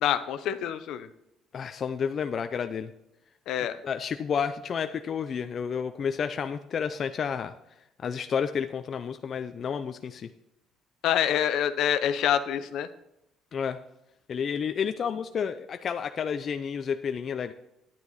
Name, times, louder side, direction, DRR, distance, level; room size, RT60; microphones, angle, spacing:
voice 1, 0.0-1.1 3.5-3.8 11.0-12.9, left 10 dB, 75° left, 10 dB, 0.8 m, -26 dB
voice 2, 1.5-2.9 3.8-7.5 8.0-10.3 13.5-13.8 14.3-17.5, left 7 dB, 45° left, 8 dB, 0.6 m, -30 dB
10.0 x 9.5 x 4.1 m, 0.85 s
cardioid pair, 90°, 0 cm